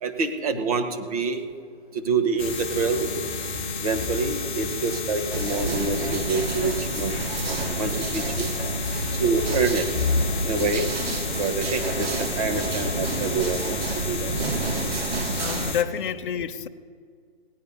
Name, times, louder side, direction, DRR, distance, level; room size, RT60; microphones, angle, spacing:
voice 1, 0.0-1.4 2.0-3.2 3.8-7.1 7.8-8.5 9.2-9.9 10.4-10.8 11.4-13.8 14.1-14.3, right 4 dB, 35° right, 1.1 m, -26 dB
sound 1, 2.4-15.8, left 4 dB, 10° left, 0.5 m, -30 dB
sound 2, 5.3-15.7, right 3 dB, 65° right, 1.4 m, -30 dB
voice 2, 8.8-9.3 15.4-16.7, left 8 dB, 50° left, 0.6 m, -30 dB
17.5 x 9.8 x 5.4 m
hypercardioid pair, 160°, 33 cm